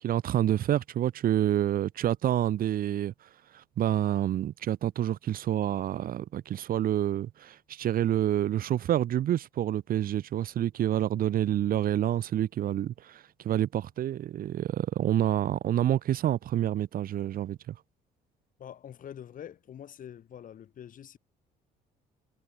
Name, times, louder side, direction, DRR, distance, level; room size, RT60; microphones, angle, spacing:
voice 1, 0.0-3.1 3.5-17.7, right 11 dB, 60° right, 1.7 m, -28 dB
voice 2, 18.6-21.2, left 9 dB, 55° left, 7.6 m, -45 dB
cardioid pair, 110°, 17 cm